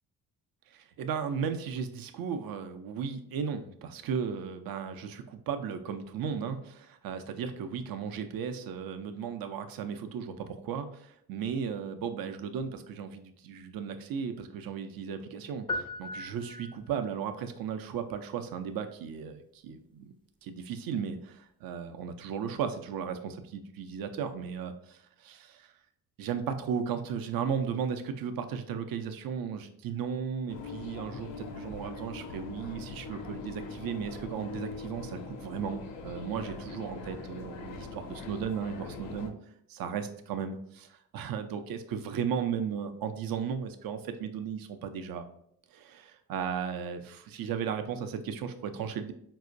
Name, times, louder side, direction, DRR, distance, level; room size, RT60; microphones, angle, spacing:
voice 1, 0.7-20.1 20.4-25.7 26.2-39.3 39.7-45.3 45.7-49.1, right 7 dB, 55° right, 8 dB, 0.5 m, -35 dB
sound 1, 15.7-17.1, left 2 dB, 10° left, 0.4 m, -37 dB
sound 2, 30.5-39.3, left 4 dB, 80° left, 0.5 m, -42 dB
4.3 x 2.0 x 2.5 m, 0.69 s
hypercardioid pair, 45°, 44 cm